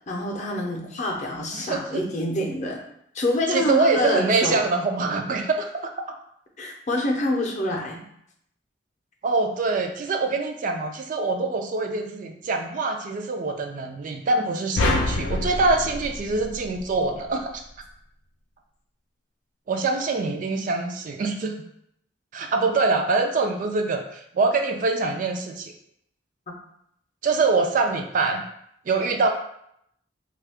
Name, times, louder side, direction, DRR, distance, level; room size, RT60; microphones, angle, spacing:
voice 1, 0.1-2.8 3.1-4.6 6.6-8.0, left 1 dB, 40° left, 0 dB, 0.6 m, -26 dB
voice 2, 1.5-2.0 3.5-5.9 9.2-17.6 19.7-21.5 22.3-25.7 27.2-28.4 28.9-29.3, right 3 dB, 45° right, 4 dB, 0.3 m, -24 dB
sound 1, 14.8-17.2, left 2 dB, 90° left, 0.4 m, -26 dB
3.0 x 2.3 x 3.4 m, 0.73 s
head